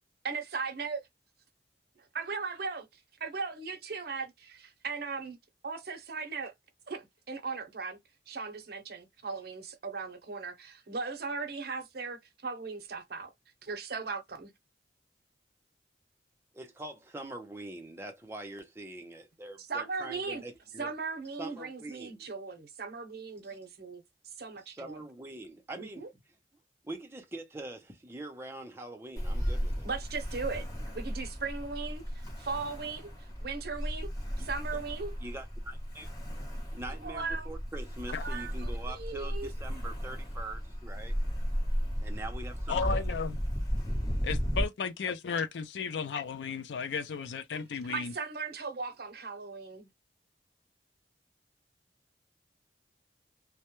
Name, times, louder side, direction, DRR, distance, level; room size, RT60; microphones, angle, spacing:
voice 1, 0.2-1.0 2.1-2.9 3.2-5.4 5.6-6.5 6.9-8.0 8.3-13.3 13.6-14.5 19.7-20.4 20.8-24.0 24.4-25.0 25.7-26.1 29.8-30.7 30.9-33.1 33.4-34.1 34.4-35.1 37.0-37.5 38.2-39.5 47.9-49.9, right 4 dB, 60° right, 0.7 m, -38 dB
voice 2, 16.5-20.9 21.4-22.3 23.4-23.6 24.6-26.1 26.8-29.9 34.4-34.8 35.2-36.1 36.7-41.1 42.0-43.0, right 2 dB, 15° right, 0.6 m, -44 dB
Ocean, 29.2-44.6, equal, 20° left, 0.9 m, -35 dB
voice 3, 42.7-43.4 44.2-48.1, left 5 dB, 80° left, 0.4 m, -34 dB
2.2 x 2.1 x 2.9 m
head